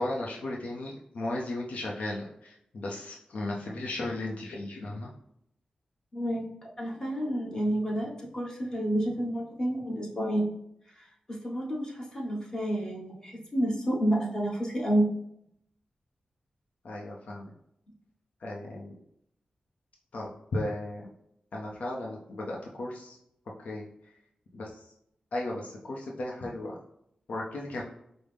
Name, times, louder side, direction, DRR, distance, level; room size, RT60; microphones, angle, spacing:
voice 1, 0.0-5.1 16.8-17.5 18.4-19.0 20.1-21.1 21.5-23.2 23.6-23.9 24.5-24.9 25.3-26.8 27.3-27.8, left 1 dB, 70° left, -2 dB, 0.6 m, -35 dB
voice 2, 6.1-6.4 6.8-10.5 11.0-11.1 11.4-15.1, right 1 dB, 25° left, -3 dB, 1.1 m, -29 dB
5.1 x 2.0 x 3.3 m, 0.76 s
wide cardioid pair, 110°, 3 cm